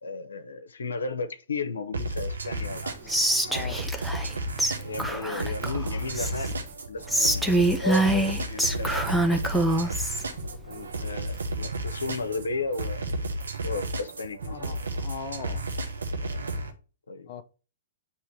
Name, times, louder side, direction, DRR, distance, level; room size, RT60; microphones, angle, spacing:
voice 1, 0.0-3.1 4.8-6.6 6.9-7.5 7.8-9.6 10.7-13.1 13.5-14.7 17.1-17.4, left 3 dB, 85° left, 0.8 m, -34 dB
sound 1, 1.9-16.7, right 1 dB, 90° right, 1.0 m, -33 dB
Whispering, 3.1-4.3 4.6-4.7 5.0-6.5 7.1-10.2, right 1 dB, ahead, 0.8 m, -25 dB
voice 2, 3.5-3.8 14.5-15.7 17.3-17.4, left 6 dB, 40° left, 0.7 m, -38 dB
sound 2, 4.3-4.4 4.6-15.0, right 1 dB, 70° right, 1.4 m, -43 dB
8.3 x 3.1 x 4.4 m
hypercardioid pair, 125°, 0 cm